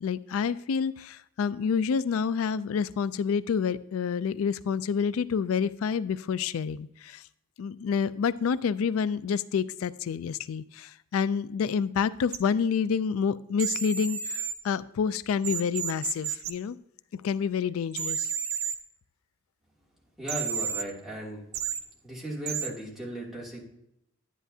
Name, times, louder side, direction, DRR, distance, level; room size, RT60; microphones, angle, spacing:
voice 1, 0.0-7.2 7.6-16.8 17.1-18.3, left 6 dB, 85° left, 17 dB, 0.3 m, -28 dB
sound 1, 12.3-12.4 13.6-14.5 15.4-16.5 17.9-18.8 20.3-20.8 21.5-21.8 22.5-22.7, right 7 dB, 75° right, 0.8 m, -31 dB
voice 2, 20.2-21.4 22.0-23.7, right 1 dB, ahead, -5 dB, 2.6 m, -36 dB
11.0 x 10.0 x 2.7 m, 0.79 s
head